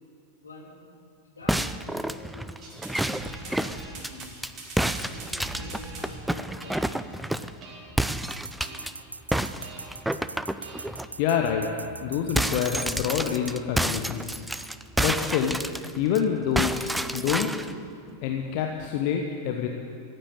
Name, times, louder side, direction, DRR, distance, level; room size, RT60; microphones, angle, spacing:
voice 1, 0.4-2.5 3.1-4.3 4.8-7.2, left 2 dB, 75° left, -3 dB, 3.2 m, -46 dB
sound 1, 1.5-4.5 4.8-7.6 8.0-8.9 9.3-11.1 11.5-11.6 11.9-16.2 16.6-17.7, right 1 dB, 5° right, 0.4 m, -29 dB
sound 2, 2.6-6.2 6.6-7.1 7.6-8.1 8.6-9.1 9.6-10.1 10.6-11.1, right 3 dB, 30° right, 2.4 m, -44 dB
sound 3, 8.3-13.5, right 3 dB, 80° right, 0.3 m, -41 dB
voice 2, 11.2-11.7 12.0-14.4 15.0-15.6 16.0-17.5 18.2-19.7, left 8 dB, 45° left, 3 dB, 1.0 m, -27 dB
15.0 x 8.9 x 8.7 m, 2.5 s
figure-of-eight pair, 90°, 0 cm